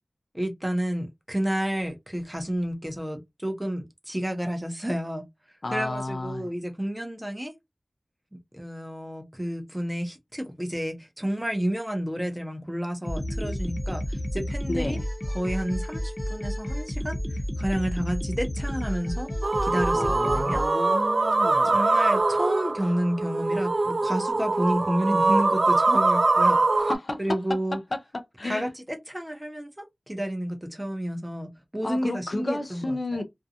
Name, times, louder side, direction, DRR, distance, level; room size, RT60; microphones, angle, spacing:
voice 1, 0.3-5.3 5.7-7.5 8.5-15.0 15.3-19.3 19.6-20.6 21.6-26.9 27.2-27.8 28.4-33.2, equal, 10° right, 0.7 m, -30 dB
voice 2, 5.6-6.5 14.7-15.0 19.9-21.8 26.8-27.2 28.4-28.6 31.8-33.2, left 2 dB, 55° left, 0.5 m, -32 dB
sound 1, 13.0-20.7, equal, 25° left, 0.9 m, -31 dB
sound 2, 19.4-26.9, right 3 dB, 70° right, 0.3 m, -23 dB
2.5 x 2.3 x 2.6 m
wide cardioid pair, 65°, 0 cm